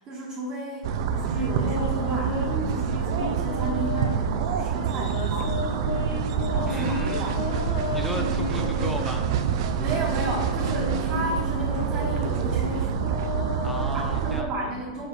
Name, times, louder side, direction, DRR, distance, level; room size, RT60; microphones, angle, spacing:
voice 1, 0.0-6.0 6.5-7.4 9.6-13.0 13.9-15.1, right 2 dB, 30° right, -6 dB, 1.3 m, -33 dB
sound 1, 0.8-14.4, right 7 dB, 50° right, 0.5 m, -27 dB
sound 2, 1.1-4.3 4.8-9.1 9.7-14.4, left 4 dB, 60° left, 1.8 m, -33 dB
voice 2, 6.6-7.2 7.9-9.3 13.6-14.5, equal, ahead, 3 dB, 0.5 m, -35 dB
4.9 x 4.8 x 5.0 m, 1.4 s
hypercardioid pair, 150°, 4 cm